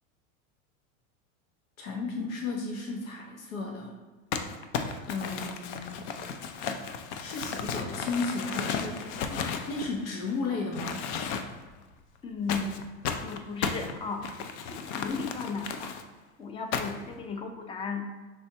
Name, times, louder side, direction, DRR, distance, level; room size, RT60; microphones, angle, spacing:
voice 1, 1.8-4.0 5.1-6.1 7.2-11.1, left 3 dB, 90° left, 1 dB, 0.9 m, -34 dB
Crumpling crinkling, 4.3-10.3 10.7-11.7 12.5-16.0 16.7-17.1, left 6 dB, 60° left, 0.6 m, -34 dB
voice 2, 12.2-12.8 13.2-14.2 14.7-15.9 16.4-18.1, left 4 dB, 15° left, 5 dB, 0.4 m, -35 dB
5.5 x 3.5 x 2.8 m, 1.3 s
supercardioid pair, 115°, 40 cm